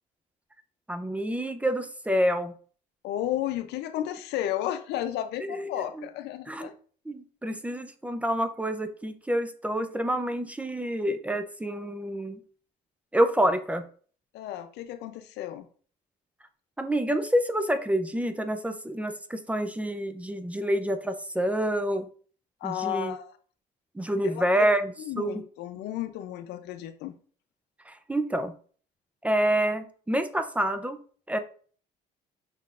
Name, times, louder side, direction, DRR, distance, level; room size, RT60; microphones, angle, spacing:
voice 1, 0.9-2.5 5.5-6.1 6.5-6.7 7.1-12.4 13.1-13.9 16.8-22.1 22.6-23.1 23.9-25.4 27.9-28.5 29.2-31.0 31.3-31.4, right 1 dB, 10° right, 9 dB, 0.4 m, -28 dB
voice 2, 3.0-6.7 14.3-15.7 22.6-23.3 24.2-24.7 25.0-27.1, left 12 dB, 80° left, 10 dB, 0.5 m, -33 dB
5.5 x 3.7 x 2.4 m, 0.43 s
cardioid pair, 110°, 17 cm